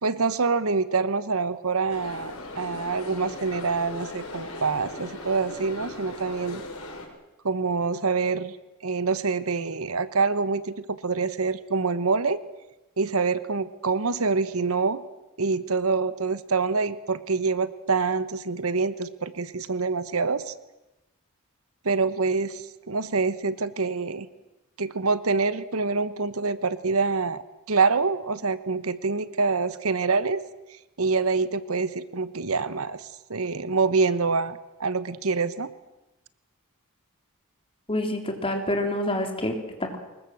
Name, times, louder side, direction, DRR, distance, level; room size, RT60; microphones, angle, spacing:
voice 1, 0.0-6.6 7.4-8.5 8.8-12.4 13.0-15.0 15.4-20.5 21.8-24.3 24.8-30.4 31.0-35.7, right 4 dB, 70° right, 14 dB, 1.1 m, -26 dB
sound 1, 1.9-7.1, left 2 dB, 70° left, 5.8 m, -38 dB
voice 2, 37.9-40.0, left 1 dB, 25° left, 4 dB, 3.7 m, -27 dB
24.5 x 21.0 x 7.9 m, 1.0 s
head